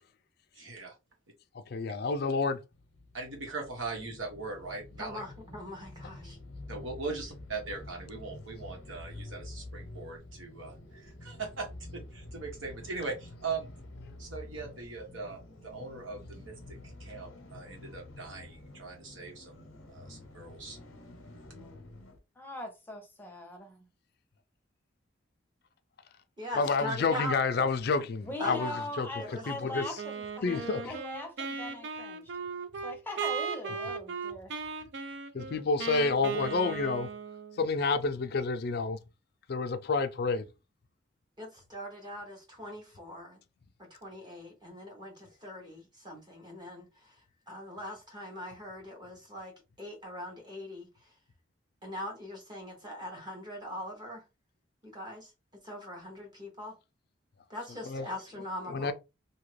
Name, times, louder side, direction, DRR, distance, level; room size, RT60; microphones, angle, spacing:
voice 1, 0.5-1.0 3.1-5.2 6.7-13.7 14.2-20.8, right 4 dB, 80° right, 1.2 m, -40 dB
voice 2, 1.7-2.6 26.6-28.7 29.0-29.1 29.5-29.9 30.4-30.9 35.3-37.1 37.6-39.0 39.5-40.5 57.8-58.1 58.7-58.9, left 4 dB, 50° left, 0.4 m, -29 dB
sound 1, 2.7-22.2, left 1 dB, 85° left, 0.7 m, -48 dB
voice 3, 5.0-6.4 26.4-27.4 28.4-28.8 29.2-29.4 41.4-43.4 43.8-47.1 47.5-49.5 49.8-50.9 51.8-54.2 54.8-55.3 55.6-56.7 57.5-58.9, left 1 dB, 20° right, 0.8 m, -41 dB
voice 4, 21.5-21.9 22.4-23.9 28.2-32.3 32.8-34.5, left 1 dB, 10° left, 0.7 m, -41 dB
Wind instrument woodwind instrument, 30.0-37.6, right 6 dB, 60° right, 0.4 m, -37 dB
2.8 x 2.3 x 3.2 m
head